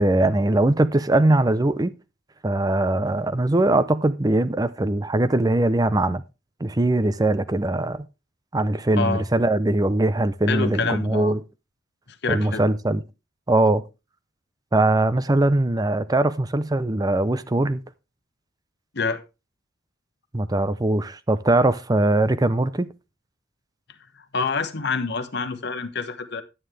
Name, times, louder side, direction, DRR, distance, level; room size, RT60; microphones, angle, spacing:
voice 1, 0.0-1.9 2.4-6.2 6.6-8.1 8.5-11.4 12.3-13.0 13.5-13.8 14.7-17.8 20.3-22.9, right 2 dB, 20° right, 0.5 m, -21 dB
voice 2, 8.9-9.2 10.5-11.3 12.2-12.6 18.9-19.2 24.3-26.4, left 4 dB, 55° left, 1.2 m, -26 dB
11.0 x 9.4 x 3.3 m
head